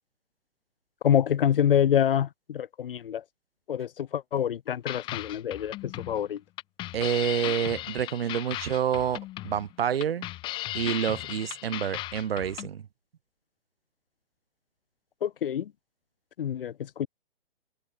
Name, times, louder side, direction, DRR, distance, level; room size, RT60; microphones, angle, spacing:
voice 1, 1.0-3.2 3.7-6.4 15.2-15.7 16.4-17.1, left 9 dB, 65° left, 0.8 m, -26 dB
sound 1, 4.9-12.7, left 17 dB, 15° left, 1.9 m, -36 dB
voice 2, 6.9-10.3 10.7-12.9, right 9 dB, 70° right, 1.2 m, -28 dB
open air
hypercardioid pair, 165°, 30 cm